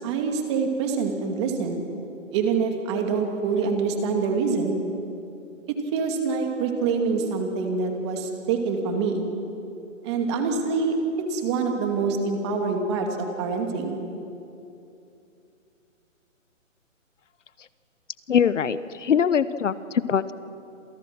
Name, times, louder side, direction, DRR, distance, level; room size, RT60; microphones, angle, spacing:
voice 1, 0.0-1.8 2.3-4.8 5.9-9.3 10.0-10.9 11.3-14.0, right 5 dB, 20° right, 3 dB, 2.4 m, -25 dB
voice 2, 18.3-20.3, left 7 dB, 65° left, 15 dB, 1.0 m, -22 dB
29.5 x 27.5 x 6.1 m, 2.7 s
hypercardioid pair, 165°, 40 cm